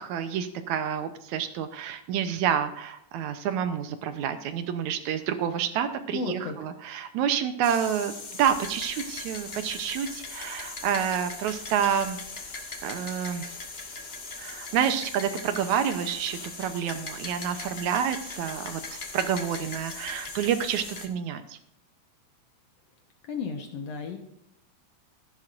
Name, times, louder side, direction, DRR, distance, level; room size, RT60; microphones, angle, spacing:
voice 1, 0.0-8.1 8.4-12.2 12.8-13.6 14.4-21.6, right 8 dB, 80° right, 9 dB, 2.1 m, -28 dB
voice 2, 6.1-6.6 23.3-24.2, left 4 dB, 65° left, 4 dB, 2.1 m, -33 dB
sound 1, 7.6-21.1, left 3 dB, 85° left, 0.5 m, -39 dB
14.5 x 10.5 x 2.5 m, 0.78 s
omnidirectional pair, 3.4 m